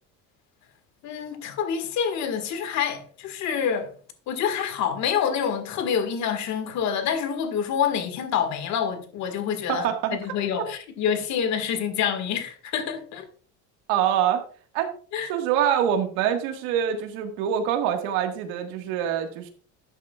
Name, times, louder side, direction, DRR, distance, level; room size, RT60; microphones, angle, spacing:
voice 1, 1.0-3.9 4.3-9.9 10.1-13.3 15.1-15.3, left 8 dB, 55° left, 1.8 m, -27 dB
voice 2, 9.7-10.2 13.9-14.4 14.7-14.9 15.3-19.5, right 9 dB, 90° right, 1.7 m, -25 dB
12.5 x 8.4 x 2.4 m
cardioid pair, 155°, 33 cm